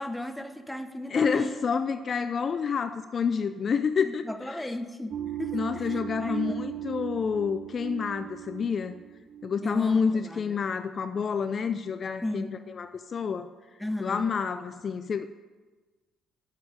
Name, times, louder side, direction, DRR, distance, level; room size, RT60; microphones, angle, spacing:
voice 1, 0.0-1.6 4.0-6.6 9.6-10.6 12.2-12.5 13.8-14.3, left 1 dB, 5° left, 9 dB, 1.1 m, -35 dB
voice 2, 1.1-4.7 5.5-8.9 9.4-12.5 12.8-13.5 14.0-15.3, left 6 dB, 50° left, 10 dB, 0.5 m, -28 dB
sound 1, 5.1-10.1, right 12 dB, 65° right, 0.5 m, -37 dB
8.4 x 7.9 x 8.3 m, 1.3 s
hypercardioid pair, 55°, 0 cm